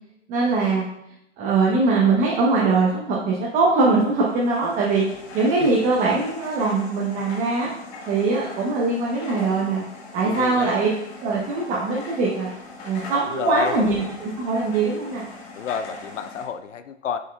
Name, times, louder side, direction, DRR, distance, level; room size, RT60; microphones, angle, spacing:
voice 1, 0.3-0.8 1.4-5.0 5.3-7.7 8.1-9.8 10.1-10.9 11.2-12.5 12.8-15.2, right 3 dB, 20° right, -4 dB, 0.8 m, -21 dB
sound 1, 4.1-16.5, left 2 dB, 60° left, 1.6 m, -41 dB
voice 2, 10.2-10.8 13.3-13.7 15.6-17.2, left 7 dB, 85° left, 10 dB, 0.6 m, -29 dB
6.5 x 6.4 x 2.2 m, 0.80 s
hypercardioid pair, 135°, 36 cm